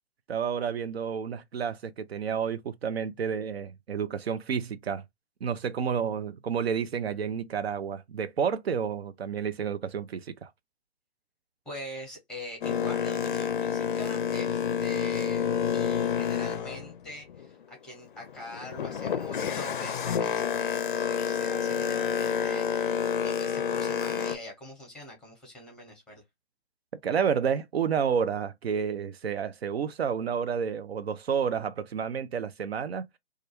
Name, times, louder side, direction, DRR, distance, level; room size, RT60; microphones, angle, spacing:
voice 1, 0.3-5.0 5.4-10.5 27.0-33.1, right 7 dB, 70° right, 0.5 m, -30 dB
voice 2, 11.6-15.5 15.7-26.2, left 1 dB, ahead, 0.8 m, -43 dB
Boat Water vehicle, 12.6-17.6 18.1-24.4, left 7 dB, 55° left, 0.4 m, -29 dB
2.3 x 2.2 x 2.9 m
figure-of-eight pair, 135°, 32 cm